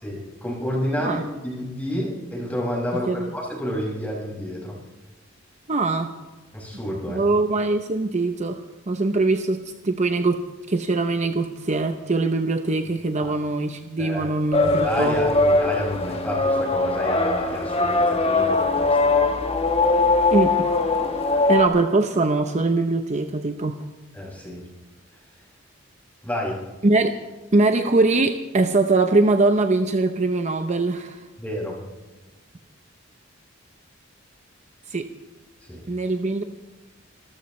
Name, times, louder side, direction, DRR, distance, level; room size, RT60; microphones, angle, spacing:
voice 1, 0.0-4.8 6.5-7.2 13.2-13.3 14.0-14.3 14.6-19.1 24.1-24.6 26.2-26.6 31.4-31.8 35.7-35.8, equal, 10° left, -3 dB, 6.1 m, -29 dB
voice 2, 5.7-6.1 7.1-8.6 8.9-10.4 10.7-15.2 20.3-20.7 21.5-23.8 26.8-27.2 27.5-31.2 34.9-35.1 35.9-36.4, right 3 dB, 35° right, 7 dB, 0.7 m, -22 dB
sound 1, 14.5-21.7, left 3 dB, 30° left, 1.4 m, -21 dB
26.5 x 14.0 x 3.2 m, 1.2 s
head